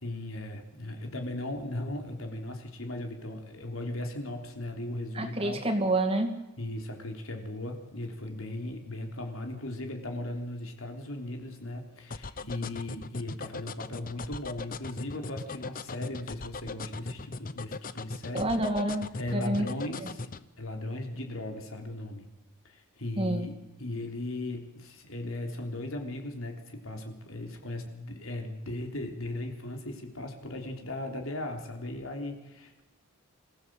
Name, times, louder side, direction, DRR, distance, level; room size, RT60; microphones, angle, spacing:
voice 1, 0.0-5.6 6.6-18.5 19.2-22.2 22.6-32.8, left 1 dB, 75° left, 3 dB, 3.5 m, -37 dB
voice 2, 5.1-6.4 18.3-19.7 20.0-20.1 23.2-23.5, right 1 dB, 25° right, 6 dB, 2.3 m, -28 dB
sound 1, 12.1-20.4, left 3 dB, 40° left, 0.8 m, -38 dB
25.5 x 16.0 x 7.7 m, 1.0 s
head